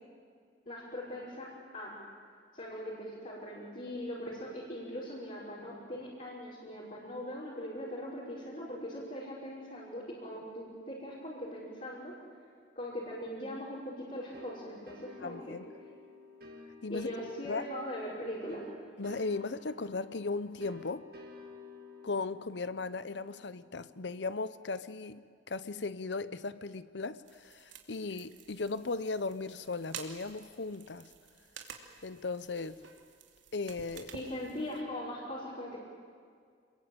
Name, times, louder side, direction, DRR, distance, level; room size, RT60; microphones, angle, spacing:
voice 1, 0.7-1.5 1.7-1.9 2.5-12.1 12.7-15.6 16.9-18.6 34.1-35.8, equal, 40° left, -8 dB, 6.1 m, -40 dB
sound 1, 14.3-24.8, left 3 dB, 55° right, 3.0 m, -52 dB
voice 2, 15.2-15.7 16.8-17.1 17.4-17.6 19.0-21.1 22.0-31.1 32.0-32.8 33.5-34.1, left 3 dB, 65° left, 14 dB, 0.8 m, -37 dB
sound 2, 27.3-34.8, right 6 dB, 85° right, 2.9 m, -51 dB
27.5 x 22.0 x 9.1 m, 2.1 s
head